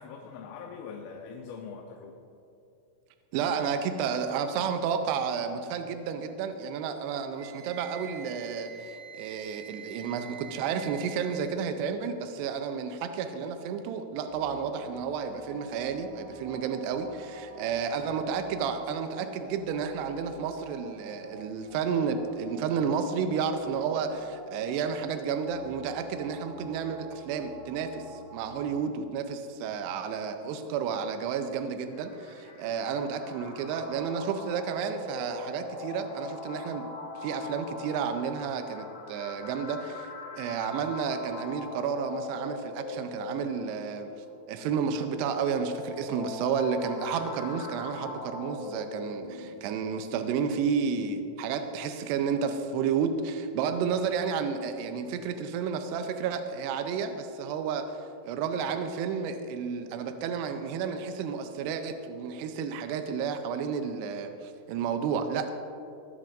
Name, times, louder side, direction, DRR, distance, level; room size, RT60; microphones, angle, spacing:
voice 1, 0.0-2.2, left 5 dB, 85° left, 1 dB, 3.3 m, -42 dB
voice 2, 3.3-36.9 37.2-40.1 40.4-44.1 44.5-65.5, right 6 dB, 90° right, 7 dB, 2.4 m, -31 dB
Wind instrument woodwind instrument, 7.3-11.5, right 8 dB, 50° right, 2.2 m, -46 dB
sound 1, 14.2-28.8, right 1 dB, 65° right, 0.5 m, -48 dB
sound 2, 31.8-49.8, left 3 dB, 60° left, 3.1 m, -41 dB
20.5 x 11.0 x 2.6 m, 2.7 s
omnidirectional pair, 5.4 m